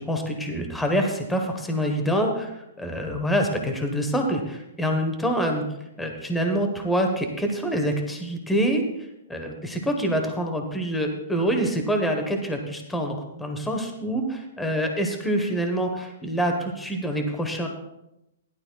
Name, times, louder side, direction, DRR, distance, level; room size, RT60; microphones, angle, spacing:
voice 1, 0.0-2.5 2.8-5.6 6.0-8.8 9.3-17.7, equal, 5° left, 3 dB, 1.1 m, -26 dB
16.0 x 11.5 x 2.3 m, 0.88 s
hypercardioid pair, 155°, 0 cm